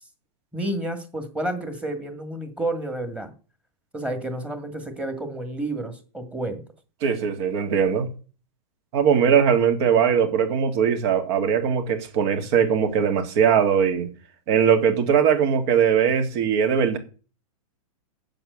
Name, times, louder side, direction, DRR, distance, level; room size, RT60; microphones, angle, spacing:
voice 1, 0.5-3.3 3.9-6.6, right 1 dB, 5° right, 1.8 m, -30 dB
voice 2, 7.0-8.1 8.9-14.1 14.5-17.0, right 7 dB, 50° right, 2.3 m, -20 dB
7.8 x 7.4 x 8.0 m
supercardioid pair, 150°, 18 cm